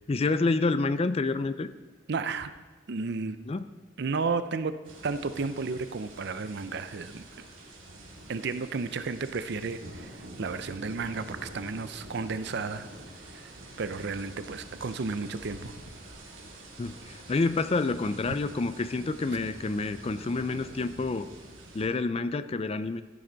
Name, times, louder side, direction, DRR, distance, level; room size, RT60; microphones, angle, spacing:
voice 1, 0.1-1.7 3.5-3.6 16.8-21.3 21.7-23.0, left 3 dB, 30° left, 13 dB, 0.4 m, -28 dB
voice 2, 2.1-2.5 2.9-3.4 4.0-4.7 5.0-7.2 8.3-10.1 10.4-12.9 13.3-13.5 13.8-15.7, right 4 dB, 55° right, 12 dB, 0.5 m, -32 dB
sound 1, 4.8-21.9, right 1 dB, 80° right, 2.5 m, -47 dB
14.5 x 9.5 x 4.0 m, 1.2 s
head